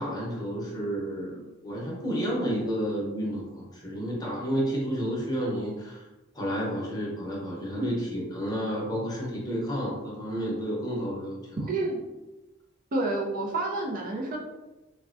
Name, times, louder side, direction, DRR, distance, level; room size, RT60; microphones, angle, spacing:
voice 1, 0.0-6.0 6.3-11.7, equal, 20° left, -4 dB, 0.7 m, -31 dB
voice 2, 11.7-12.0 12.9-14.4, right 2 dB, 45° right, -1 dB, 0.4 m, -29 dB
3.5 x 2.1 x 2.4 m, 1.1 s
head